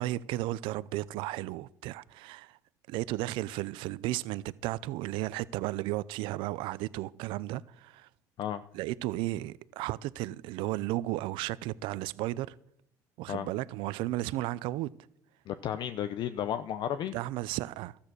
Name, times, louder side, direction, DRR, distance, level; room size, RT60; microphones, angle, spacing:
voice 1, 0.0-2.6 2.9-8.1 8.7-12.5 13.2-14.9 17.1-18.0, right 17 dB, 75° right, 0.5 m, -34 dB
voice 2, 15.5-17.2, left 10 dB, 55° left, 0.6 m, -33 dB
13.0 x 8.6 x 6.2 m
supercardioid pair, 85°, 9 cm